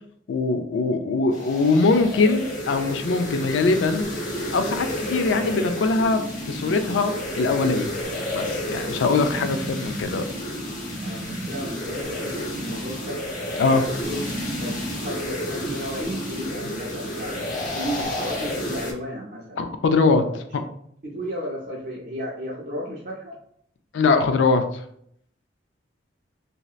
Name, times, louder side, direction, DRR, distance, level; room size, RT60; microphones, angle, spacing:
voice 1, 0.3-4.1 4.5-7.9 8.3-10.2 13.6-13.8 19.6-20.2 23.9-24.6, left 3 dB, 85° left, 8 dB, 0.4 m, -22 dB
sound 1, 1.3-18.9, equal, 40° left, 0.7 m, -31 dB
voice 2, 11.0-13.2 13.9-14.3 14.6-19.6 20.2-20.4 21.0-23.4, equal, 50° right, -5 dB, 0.5 m, -34 dB
3.1 x 2.7 x 2.4 m, 0.68 s
head